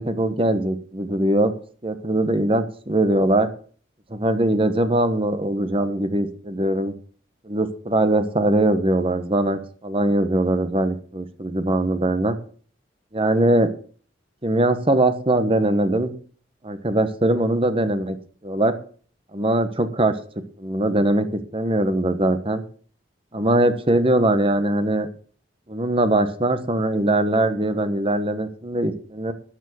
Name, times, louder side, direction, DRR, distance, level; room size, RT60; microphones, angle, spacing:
voice 1, 0.0-1.5 1.8-3.5 4.1-6.9 7.4-12.4 13.1-13.7 14.4-16.1 16.6-18.2 18.4-18.7 19.3-20.1 20.6-21.3 21.5-22.6 23.3-25.1 25.7-29.3, right 1 dB, 30° right, 10 dB, 1.2 m, -21 dB
12.5 x 7.4 x 7.0 m, 0.44 s
head